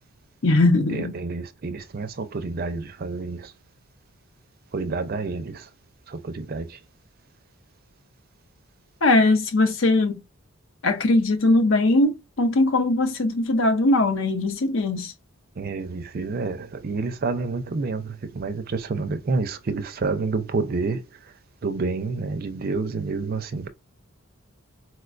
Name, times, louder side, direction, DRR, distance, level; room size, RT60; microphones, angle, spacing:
voice 1, 0.4-1.1 9.0-10.2 10.8-15.1, left 2 dB, 65° left, 0.7 m, -20 dB
voice 2, 1.2-3.4 4.7-5.6 6.3-6.6 15.6-18.0 18.4-21.0 21.6-23.7, right 4 dB, 45° right, 0.4 m, -28 dB
4.3 x 2.2 x 2.4 m
head